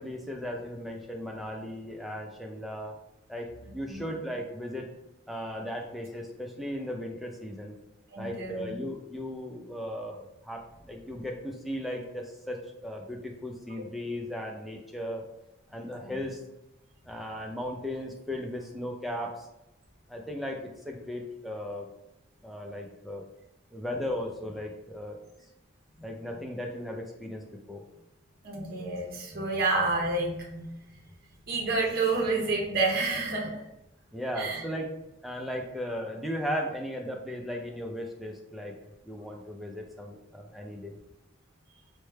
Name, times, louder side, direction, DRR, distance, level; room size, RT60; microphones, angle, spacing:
voice 1, 0.0-3.0 3.3-4.9 5.3-7.8 8.2-15.2 15.7-16.4 17.1-19.5 20.1-21.9 22.4-23.2 23.7-25.2 26.0-27.8 34.1-34.9 35.2-38.7 39.0-40.9, equal, ahead, 0 dB, 0.4 m, -36 dB
voice 2, 3.7-4.1 8.1-8.7 15.9-16.2 28.4-30.7 31.5-33.6 34.4-34.6, right 3 dB, 45° right, -1 dB, 0.6 m, -29 dB
4.4 x 2.1 x 3.2 m, 0.90 s
head